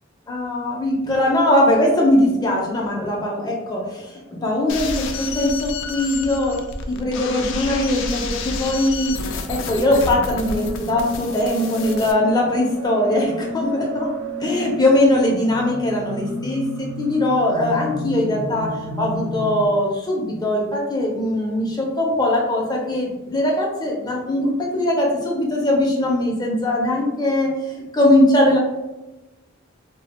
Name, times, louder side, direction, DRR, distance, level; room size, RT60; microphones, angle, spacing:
voice 1, 0.3-14.1 14.4-28.6, left 1 dB, 20° left, -1 dB, 0.6 m, -21 dB
sound 1, 4.7-12.1, left 4 dB, 65° left, 0.3 m, -30 dB
sound 2, 10.4-19.7, equal, 80° right, 0.4 m, -31 dB
2.2 x 2.2 x 3.4 m, 1.0 s
head